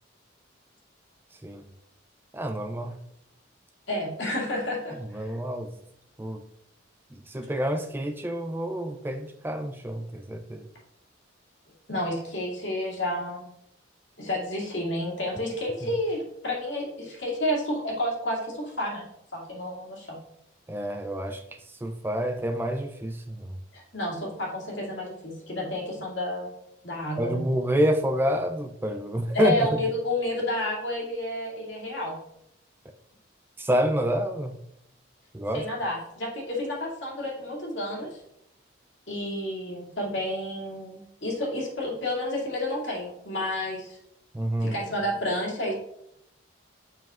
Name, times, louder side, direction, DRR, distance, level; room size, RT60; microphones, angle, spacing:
voice 1, 2.3-2.9 5.1-5.7 6.2-6.4 7.3-10.6 20.7-21.4 21.8-23.5 27.2-29.7 33.6-34.6 35.3-35.6 44.3-44.7, equal, 10° right, 6 dB, 0.3 m, -28 dB
voice 2, 3.9-5.4 11.9-13.4 14.2-19.1 19.3-20.2 23.7-26.5 26.8-27.4 29.3-32.2 35.5-38.2 39.1-44.0 44.6-45.7, left 1 dB, 75° left, -3 dB, 2.3 m, -30 dB
7.1 x 5.7 x 2.4 m, 0.77 s
head